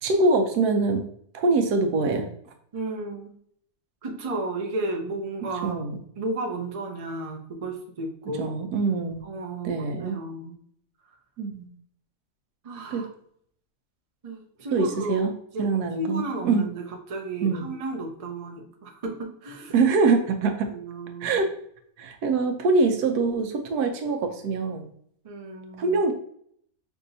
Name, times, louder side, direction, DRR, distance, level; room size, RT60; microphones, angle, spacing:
voice 1, 0.0-1.0 1.3-2.3 5.6-6.0 8.4-9.2 9.6-10.2 11.4-11.7 12.9-13.1 14.7-15.3 15.6-16.6 17.4-17.6 19.7-20.7 21.2-21.5 22.0-24.9 25.8-26.1, right 3 dB, 80° right, 6 dB, 1.2 m, -24 dB
voice 2, 2.7-3.3 4.0-5.8 6.2-8.5 9.2-10.5 12.6-13.1 14.2-16.8 17.1-19.7 20.7-21.3 25.2-26.0, right 2 dB, 50° right, 2 dB, 0.4 m, -33 dB
5.8 x 2.6 x 2.6 m, 0.64 s
omnidirectional pair, 1.6 m